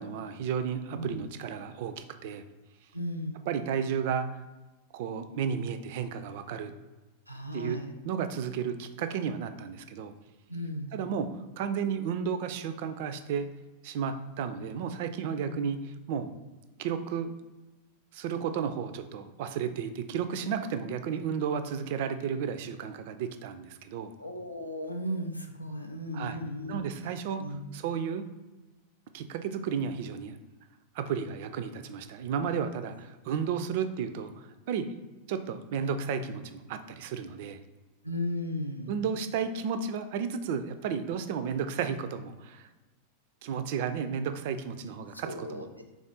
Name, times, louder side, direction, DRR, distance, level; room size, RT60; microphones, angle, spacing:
voice 1, 0.0-2.4 3.5-4.4 4.9-6.7 7.5-7.8 8.0-10.1 10.9-13.5 13.8-15.8 16.1-16.3 16.8-17.3 18.1-24.1 26.1-26.4 26.7-27.4 27.7-28.3 29.1-30.4 30.9-34.9 35.3-37.6 38.9-42.7 43.4-45.8, right 7 dB, 50° right, 10 dB, 0.3 m, -33 dB
voice 2, 2.9-3.5 7.3-7.9 10.5-11.0 15.4-15.6 24.2-26.9 27.4-27.7 38.0-39.0 45.1-45.8, equal, 90° left, 4 dB, 0.4 m, -36 dB
3.4 x 2.4 x 3.8 m, 1.1 s
figure-of-eight pair, 90°, 0 cm